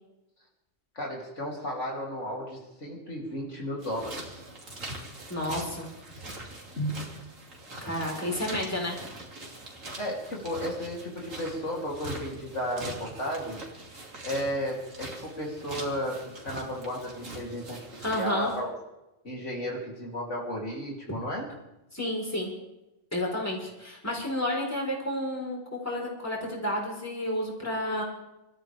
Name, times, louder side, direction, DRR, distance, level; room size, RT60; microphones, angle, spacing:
voice 1, 1.0-4.4 6.8-6.9 10.0-13.6 14.2-17.9 18.1-18.7 19.2-21.5, equal, 65° left, -3 dB, 3.6 m, -33 dB
sound 1, 3.8-18.6, right 2 dB, 80° right, 3.1 m, -43 dB
voice 2, 5.3-5.9 7.8-9.0 18.0-18.5 21.9-22.5 23.1-28.0, left 1 dB, 10° left, -2 dB, 4.3 m, -31 dB
27.0 x 13.5 x 3.5 m, 0.96 s
omnidirectional pair, 1.3 m